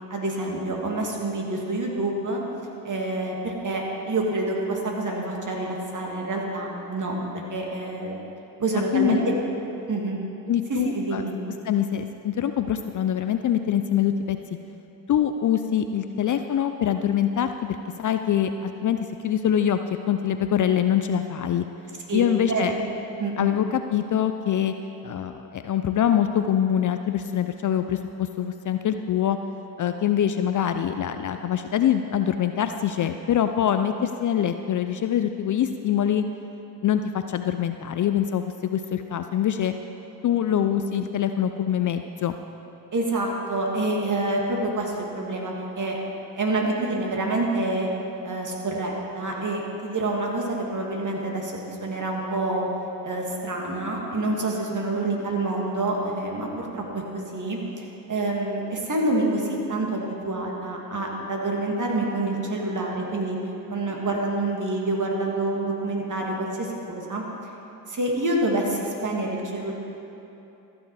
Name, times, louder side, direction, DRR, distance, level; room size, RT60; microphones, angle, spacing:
voice 1, 0.1-2.4 2.8-8.2 8.6-9.3 9.9-10.2 10.7-11.4 22.1-22.9 23.2-23.6 42.9-46.0 46.3-47.9 48.2-52.7 53.0-63.4 63.7-67.2 67.9-69.7, right 2 dB, 40° right, -1 dB, 2.4 m, -27 dB
voice 2, 10.5-11.2 11.6-14.4 15.1-17.5 18.0-19.0 19.2-19.8 20.1-21.7 22.1-22.7 23.4-24.7 25.0-29.4 29.8-36.2 36.8-39.7 40.2-42.3, left 9 dB, 40° left, 8 dB, 0.5 m, -24 dB
14.0 x 7.1 x 4.8 m, 2.9 s
hypercardioid pair, 50°, 48 cm